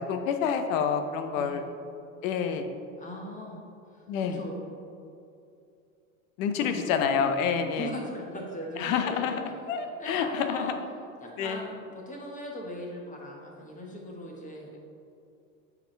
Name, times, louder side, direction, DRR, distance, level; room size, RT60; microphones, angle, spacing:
voice 1, 0.1-1.6 2.2-2.7 4.1-4.4 6.4-7.9 8.8-10.8 11.4-11.6, left 7 dB, 70° left, 7 dB, 0.8 m, -28 dB
voice 2, 3.0-3.6 3.9-4.7 6.6-6.9 7.8-9.4 10.0-10.8 11.2-14.7, equal, 20° left, -1 dB, 1.3 m, -40 dB
8.8 x 4.9 x 3.3 m, 2.5 s
supercardioid pair, 105°, 41 cm